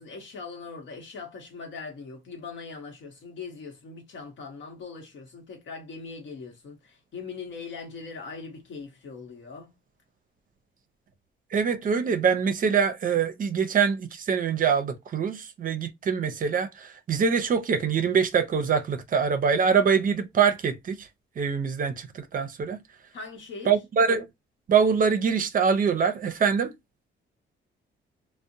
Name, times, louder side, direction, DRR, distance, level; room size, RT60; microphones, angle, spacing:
voice 1, 0.0-9.8 23.1-23.8, left 4 dB, 70° left, 0.9 m, -41 dB
voice 2, 11.5-21.1 21.4-22.8 23.7-24.3 24.7-26.7, right 6 dB, 45° right, 0.5 m, -24 dB
2.5 x 2.0 x 2.6 m
cardioid pair, 90°, 20 cm